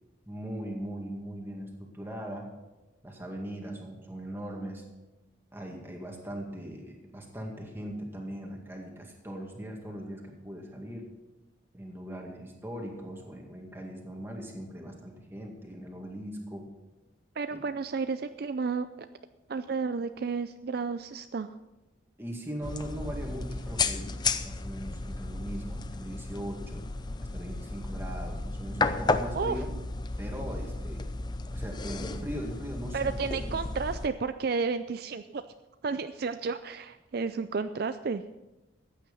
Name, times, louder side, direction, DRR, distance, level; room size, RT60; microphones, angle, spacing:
voice 1, 0.3-2.5 3.0-4.8 5.5-11.1 11.7-16.7 17.5-17.6 22.2-26.9 27.2-29.7 30.2-31.0 31.5-33.6, equal, 10° right, 1 dB, 2.0 m, -40 dB
voice 2, 17.4-18.9 19.5-21.6 29.3-29.6 32.9-35.4 35.8-38.2, right 4 dB, 50° right, 10 dB, 0.4 m, -32 dB
sound 1, 22.6-34.1, left 3 dB, 20° left, 0.5 m, -33 dB
14.5 x 9.1 x 5.4 m, 1.0 s
head